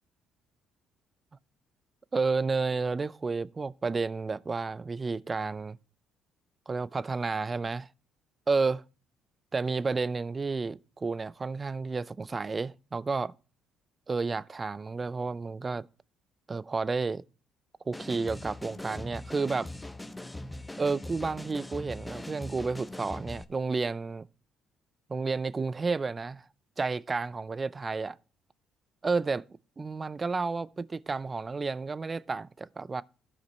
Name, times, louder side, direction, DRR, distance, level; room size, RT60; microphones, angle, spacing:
voice 1, 2.1-5.8 6.7-7.9 8.5-8.8 9.5-13.3 14.1-15.8 16.5-17.2 17.9-19.7 20.8-24.2 25.1-26.4 26.8-28.2 29.0-29.5 29.8-33.0, right 4 dB, 30° right, 0.4 m, -31 dB
sound 1, 17.9-23.4, left 1 dB, 15° left, 0.9 m, -41 dB
12.0 x 5.0 x 4.3 m
hypercardioid pair, 55°, 0 cm